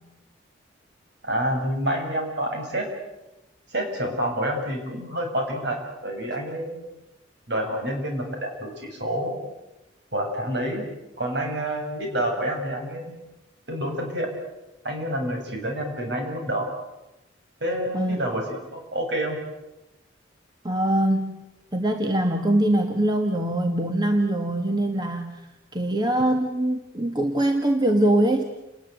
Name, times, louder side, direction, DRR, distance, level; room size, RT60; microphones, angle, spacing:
voice 1, 1.2-2.9 3.7-6.8 7.5-9.4 10.1-10.8 11.2-13.2 13.7-14.3 14.8-16.8 17.6-19.4, right 1 dB, 60° right, 2 dB, 7.2 m, -28 dB
voice 2, 20.6-21.3 21.7-25.4 25.7-28.4, right 1 dB, 20° right, 4 dB, 1.6 m, -23 dB
29.5 x 20.5 x 8.2 m, 0.98 s
head